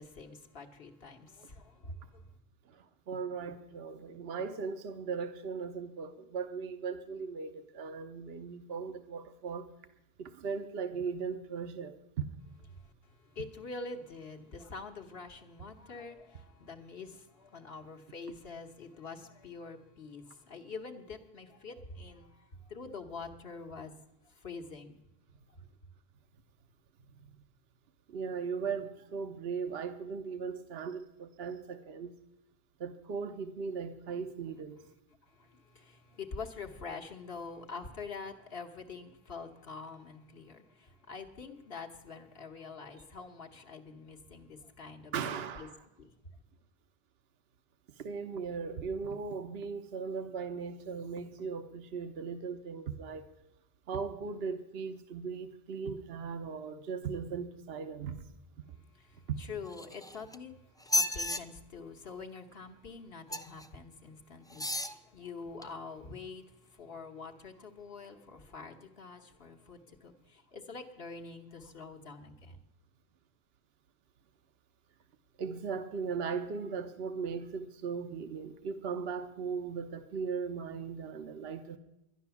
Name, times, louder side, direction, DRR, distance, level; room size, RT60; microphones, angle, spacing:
voice 1, 0.0-2.3 12.7-25.0 25.5-25.6 35.2-45.1 45.6-45.7 46.0-46.1 58.9-72.6, left 4 dB, 65° left, 1.4 m, -46 dB
voice 2, 2.7-9.6 10.2-12.3 28.1-32.1 32.8-34.8 45.1-45.8 48.0-53.2 53.9-58.3 59.3-59.4 75.4-81.8, right 5 dB, 70° right, 1.1 m, -38 dB
sound 1, 59.7-60.4 60.8-61.4 63.3-63.7 64.5-65.0 65.6-65.7, left 1 dB, 5° left, 0.3 m, -32 dB
12.0 x 10.5 x 7.0 m
omnidirectional pair, 1.1 m